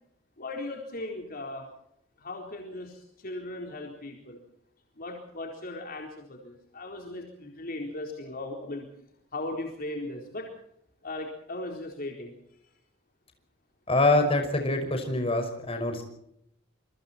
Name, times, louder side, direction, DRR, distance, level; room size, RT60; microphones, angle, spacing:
voice 1, 0.4-1.7 2.2-4.4 5.0-8.9 9.3-10.5 11.0-12.3, left 2 dB, 45° left, 1 dB, 4.1 m, -37 dB
voice 2, 13.9-16.0, left 2 dB, 30° left, 5 dB, 5.6 m, -25 dB
27.5 x 24.0 x 4.4 m, 0.76 s
head